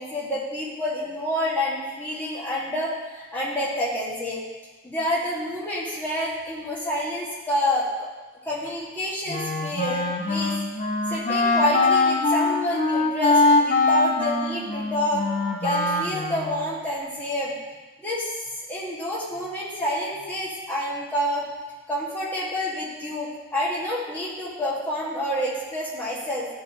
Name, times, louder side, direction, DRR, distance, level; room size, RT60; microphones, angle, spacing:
voice 1, 0.0-4.4 4.8-7.8 8.4-10.5 11.1-15.2 15.6-17.5 18.0-18.4 18.7-21.4 21.9-26.5, left 1 dB, 10° left, -8 dB, 1.5 m, -28 dB
Wind instrument woodwind instrument, 9.3-16.6, left 3 dB, 35° left, 0.5 m, -23 dB
10.5 x 4.5 x 2.8 m, 1.2 s
head